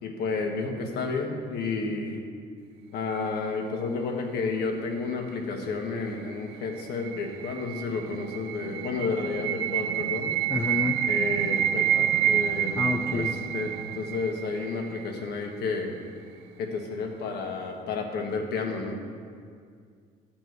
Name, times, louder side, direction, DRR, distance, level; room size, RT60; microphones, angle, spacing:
voice 1, 0.0-2.2 2.9-10.3 11.1-12.8 13.1-13.3 13.5-15.9 16.6-19.0, left 4 dB, 70° left, 2 dB, 1.5 m, -31 dB
sound 1, 6.3-15.3, right 11 dB, 85° right, 0.4 m, -28 dB
voice 2, 10.5-11.0 12.8-13.3, left 4 dB, 15° left, 3 dB, 0.5 m, -29 dB
10.5 x 4.3 x 7.9 m, 2.1 s
cardioid pair, 110°, 17 cm